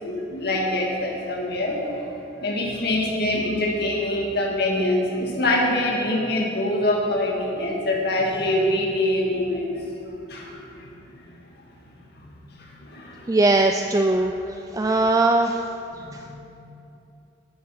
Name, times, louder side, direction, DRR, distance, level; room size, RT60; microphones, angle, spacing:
voice 1, 0.0-1.8 2.4-9.8 10.3-10.6 12.2-12.3 12.6-13.3 14.1-14.3 16.0-16.3, left 1 dB, 55° left, -2 dB, 2.2 m, -24 dB
voice 2, 13.3-14.3 14.7-15.6, right 2 dB, 20° right, 5 dB, 0.3 m, -19 dB
12.0 x 9.5 x 5.9 m, 2.9 s
head